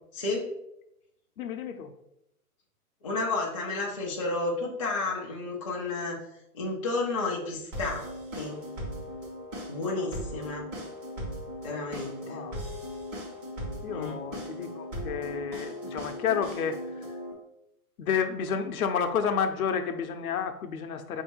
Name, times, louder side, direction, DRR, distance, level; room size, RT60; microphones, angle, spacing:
voice 1, 0.1-0.5 3.0-6.2 6.5-8.1 8.3-8.6 9.7-10.7 11.6-12.4 13.9-14.2, left 3 dB, 25° left, -4 dB, 0.4 m, -31 dB
voice 2, 1.4-1.9 9.9-10.1 12.2-12.6 13.8-17.2 18.0-21.2, left 7 dB, 65° left, 7 dB, 0.7 m, -31 dB
sound 1, 7.7-17.3, equal, 20° right, 1.0 m, -38 dB
4.3 x 2.7 x 4.4 m, 0.82 s
hypercardioid pair, 145°, 46 cm